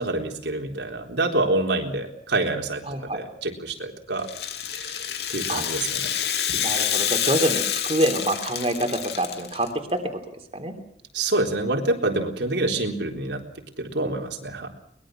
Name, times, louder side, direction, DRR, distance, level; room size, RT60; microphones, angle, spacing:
voice 1, 0.0-4.3 4.7-5.0 5.3-6.1 6.5-6.6 11.1-13.4 13.8-14.7, right 2 dB, 85° right, 2 dB, 3.9 m, -27 dB
voice 2, 2.9-3.2 5.5-5.6 6.6-9.7 10.5-10.7, right 1 dB, 35° right, 4 dB, 3.2 m, -26 dB
Rattle (instrument), 4.2-9.7, left 9 dB, 70° left, 2.7 m, -27 dB
23.0 x 21.5 x 6.4 m, 0.69 s
head